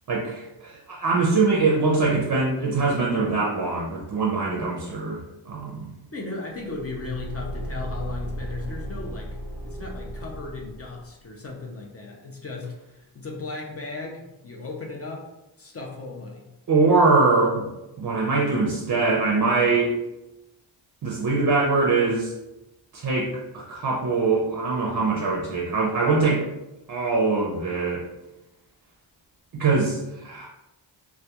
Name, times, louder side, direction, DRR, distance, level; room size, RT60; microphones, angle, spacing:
voice 1, 0.1-5.2 5.5-5.9 16.7-17.7 18.0-20.0 21.0-22.3 22.9-26.5 26.9-28.0 29.5-30.5, right 3 dB, 45° right, -2 dB, 0.5 m, -23 dB
voice 2, 6.1-9.4 9.6-15.3 15.6-16.5, left 3 dB, 30° left, -1 dB, 0.4 m, -36 dB
Car / Engine, 6.6-11.1, equal, 85° left, 0.8 m, -35 dB
2.2 x 2.2 x 2.8 m, 0.95 s
wide cardioid pair, 100°, 47 cm